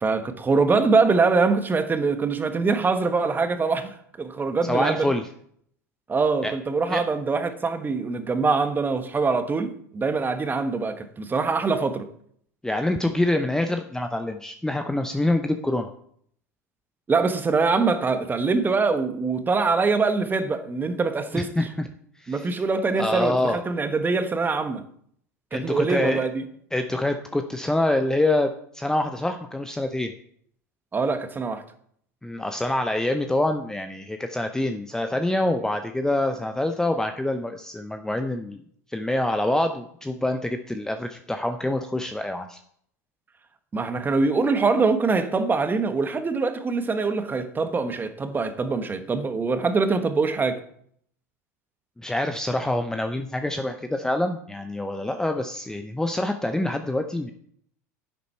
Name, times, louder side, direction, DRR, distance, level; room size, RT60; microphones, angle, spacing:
voice 1, 0.0-5.1 6.1-12.1 17.1-21.5 22.3-24.8 25.5-26.4 30.9-31.6 43.7-50.6, right 4 dB, 20° right, 1.3 m, -23 dB
voice 2, 4.6-5.2 6.4-6.5 6.9-7.0 12.6-15.9 21.3-21.9 22.2-22.5 23.0-23.6 25.5-26.2 26.7-28.5 28.7-30.1 32.2-38.6 38.9-42.6 52.0-57.3, left 1 dB, 5° left, 0.7 m, -26 dB
10.5 x 8.3 x 4.5 m
hypercardioid pair, 85°, 9 cm